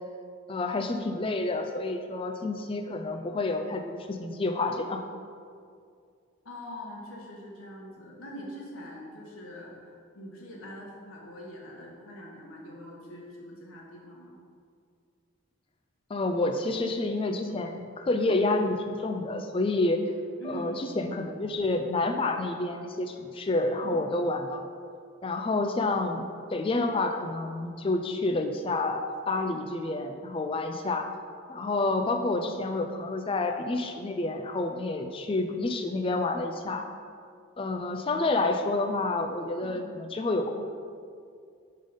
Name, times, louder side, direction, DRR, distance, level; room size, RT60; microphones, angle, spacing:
voice 1, 0.5-5.0 16.1-20.1 20.5-24.6 25.2-26.3 26.5-31.1 31.5-36.9 37.6-40.6, left 2 dB, 25° left, 6 dB, 0.3 m, -29 dB
voice 2, 6.4-14.3 20.4-20.9 23.8-24.1 39.6-40.0, equal, 90° left, -3 dB, 1.3 m, -43 dB
5.3 x 3.7 x 5.2 m, 2.3 s
head